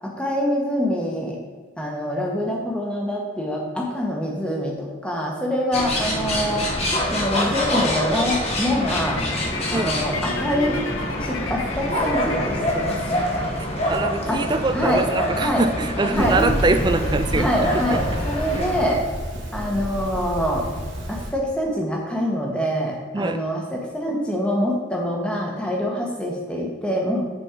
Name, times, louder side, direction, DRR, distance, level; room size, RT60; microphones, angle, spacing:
voice 1, 0.0-1.4 1.8-6.7 7.1-9.2 9.7-10.8 11.2-13.3 14.3-14.4 14.7-15.0 15.4-15.6 16.1-16.4 17.3-19.0 19.5-20.6 21.1-27.2, equal, 5° left, -1 dB, 1.1 m, -25 dB
sound 1, 5.7-18.9, left 1 dB, 30° left, 1.1 m, -26 dB
sound 2, 8.7-13.9, left 3 dB, 80° left, 0.8 m, -35 dB
voice 2, 13.6-18.0 18.5-18.7 23.1-23.4, right 3 dB, 20° right, 9 dB, 0.4 m, -24 dB
sound 3, 16.1-21.3, equal, 65° right, 1.8 m, -29 dB
7.3 x 4.4 x 5.1 m, 1.4 s
head